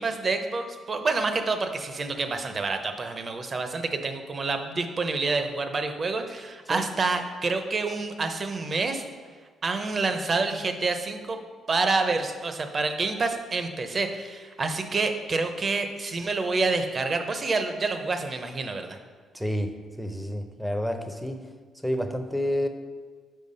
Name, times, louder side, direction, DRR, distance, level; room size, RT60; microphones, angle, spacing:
voice 1, 0.0-9.0 9.6-11.4 11.7-19.0, right 3 dB, 40° right, 7 dB, 0.7 m, -28 dB
voice 2, 19.3-21.5 21.8-22.7, equal, ahead, 7 dB, 0.6 m, -29 dB
5.6 x 4.6 x 5.4 m, 1.5 s
cardioid pair, 90°, 0 cm